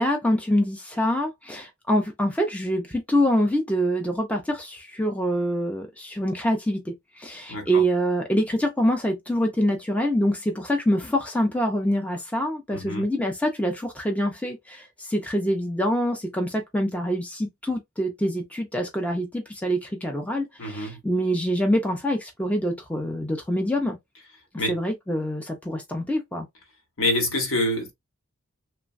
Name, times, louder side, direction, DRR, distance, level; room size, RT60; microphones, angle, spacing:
voice 1, 0.0-24.0 24.7-26.5, equal, 5° left, 0.5 m, -25 dB
voice 2, 7.5-7.8 12.7-13.0 20.6-21.0 24.6-24.8 27.0-27.9, left 1 dB, 65° left, 1.0 m, -26 dB
3.0 x 2.2 x 2.5 m
head